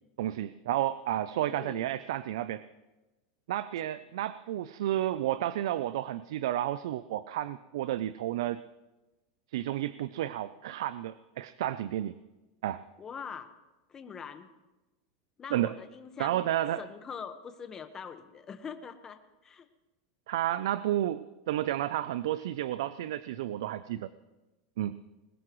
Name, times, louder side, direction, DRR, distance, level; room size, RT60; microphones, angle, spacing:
voice 1, 0.2-2.6 3.5-8.6 9.5-12.2 12.6-12.8 15.5-15.7 16.2-16.8 20.3-24.1 24.8-25.0, right 13 dB, 75° right, 15 dB, 0.5 m, -31 dB
voice 2, 1.5-1.9 13.0-13.5 13.9-14.5 15.4-16.5 16.8-19.7, left 6 dB, 25° left, 9 dB, 1.3 m, -43 dB
21.0 x 19.0 x 3.1 m, 1.1 s
supercardioid pair, 125°, 2 cm